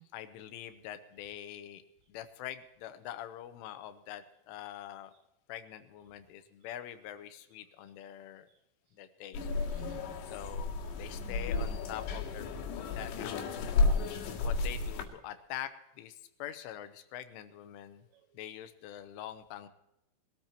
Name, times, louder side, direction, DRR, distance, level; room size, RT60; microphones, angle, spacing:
voice 1, 0.1-1.8 2.1-5.1 5.5-8.5 8.9-9.5 10.2-13.9 14.4-18.0 18.3-19.7, left 11 dB, 80° left, 9 dB, 3.3 m, -44 dB
sound 1, 9.3-15.1, left 3 dB, 65° left, 3.8 m, -32 dB
voice 2, 9.7-10.3 10.9-11.0 12.8-13.1 14.0-14.5 15.0-15.1 17.0-17.1 18.1-18.3, right 16 dB, 85° right, 6 dB, 2.6 m, -56 dB
22.0 x 13.5 x 2.9 m, 0.87 s
omnidirectional pair, 5.7 m